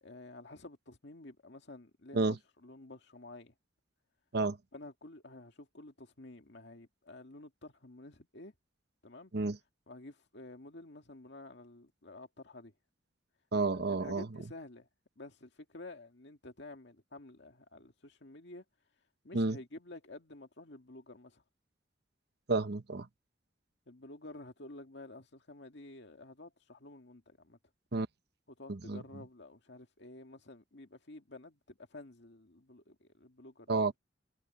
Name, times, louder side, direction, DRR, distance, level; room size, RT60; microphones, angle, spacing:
voice 1, 0.0-3.5 4.7-8.5 9.0-9.3 9.9-12.7 13.7-14.9 15.2-18.6 19.2-21.4 23.9-27.6 28.5-33.9, left 2 dB, 65° left, 2.1 m, -51 dB
voice 2, 13.5-14.3 19.3-19.6 22.5-23.1 27.9-28.1 28.7-29.0 33.7-34.0, right 3 dB, 60° right, 1.0 m, -30 dB
head